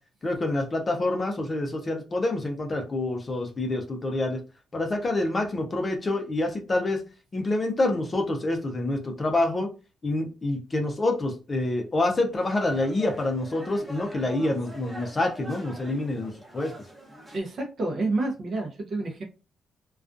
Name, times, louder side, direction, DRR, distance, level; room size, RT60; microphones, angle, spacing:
voice 1, 0.2-4.4 4.7-7.0 7.3-9.7 10.0-16.7, left 2 dB, 25° left, 3 dB, 0.5 m, -27 dB
sound 1, 12.4-17.4, right 1 dB, 10° right, 0.9 m, -44 dB
voice 2, 17.3-19.2, right 2 dB, 50° right, 1 dB, 0.7 m, -29 dB
2.3 x 2.3 x 2.5 m, 0.32 s
cardioid pair, 115°, 0 cm